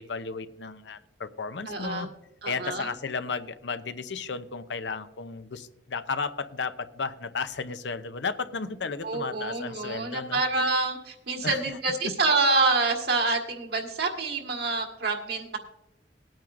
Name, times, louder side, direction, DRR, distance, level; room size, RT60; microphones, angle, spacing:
voice 1, 0.0-2.1 2.5-10.4 11.4-11.6, left 4 dB, 85° left, 11 dB, 0.7 m, -34 dB
voice 2, 1.6-2.1 2.4-2.9 9.0-15.6, right 3 dB, 65° right, 2 dB, 1.6 m, -27 dB
19.5 x 9.0 x 2.5 m, 0.88 s
head